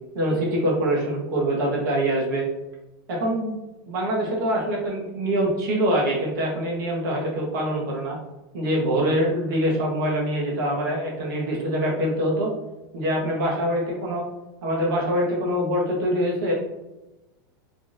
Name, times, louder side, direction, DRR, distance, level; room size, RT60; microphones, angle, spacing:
voice 1, 0.1-2.5 3.1-3.6 3.9-8.2 8.5-12.5 12.9-14.2 14.6-16.5, equal, 60° right, -3 dB, 1.4 m, -24 dB
3.7 x 3.4 x 2.6 m, 1.0 s
supercardioid pair, 170°, 12 cm